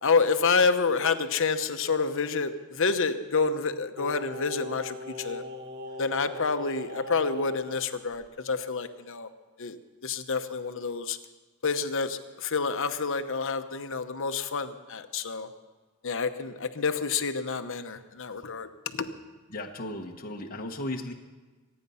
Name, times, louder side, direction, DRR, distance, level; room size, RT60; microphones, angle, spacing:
voice 1, 0.0-5.4 6.0-9.3 9.6-9.8 10.0-11.2 11.6-15.5 16.0-19.1, left 4 dB, 60° left, 8 dB, 0.9 m, -28 dB
Singing, 4.0-7.8 8.1-8.2, left 2 dB, 50° right, 1.3 m, -40 dB
voice 2, 19.5-21.1, left 1 dB, 40° left, 1 dB, 1.2 m, -35 dB
24.5 x 9.6 x 5.6 m, 1.3 s
head